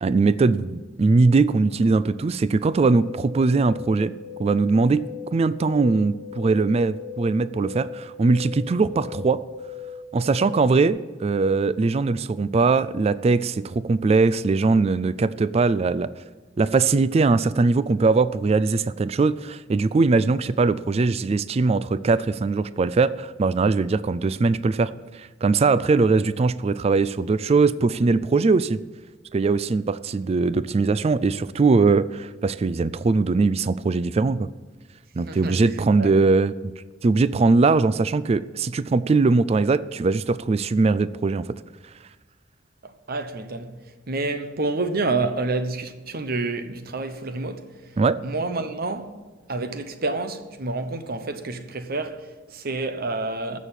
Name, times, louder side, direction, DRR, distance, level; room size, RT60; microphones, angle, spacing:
voice 1, 0.0-4.1 4.4-5.0 5.3-9.4 10.1-16.1 16.6-28.8 29.3-34.5 35.2-36.6 37.0-41.4 48.0-48.2, right 3 dB, 35° right, 0.3 m, -21 dB
sound 1, 2.7-10.9, left 6 dB, 5° left, 3.5 m, -39 dB
voice 2, 35.3-36.1 42.8-43.8 44.1-47.8 48.2-49.2 49.5-53.6, right 3 dB, 55° right, 1.0 m, -29 dB
15.0 x 6.4 x 7.4 m
head